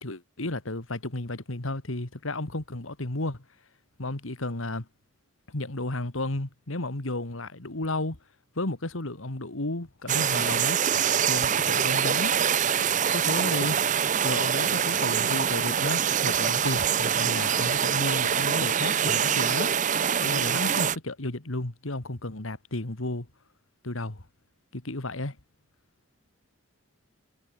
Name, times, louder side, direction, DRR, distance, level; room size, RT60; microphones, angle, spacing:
voice 1, 0.0-3.4 4.0-4.9 5.5-8.2 8.6-10.8 11.2-12.4 13.1-13.8 14.2-19.7 20.2-23.3 23.8-24.2 24.7-25.4, left 2 dB, 90° left, 2.3 m, -32 dB
sound 1, 10.1-21.0, right 8 dB, 40° right, 0.6 m, -25 dB
head